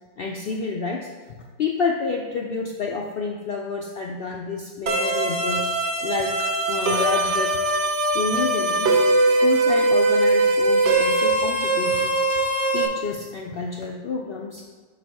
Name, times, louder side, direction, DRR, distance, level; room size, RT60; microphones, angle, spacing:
voice 1, 0.2-1.1 1.6-5.7 6.0-7.5 8.1-8.9 9.2-12.2 12.7-14.6, left 4 dB, 70° left, 0 dB, 0.5 m, -29 dB
sound 1, 4.9-12.9, right 2 dB, 60° right, 1.0 m, -21 dB
7.4 x 3.5 x 4.7 m, 1.5 s
omnidirectional pair, 1.5 m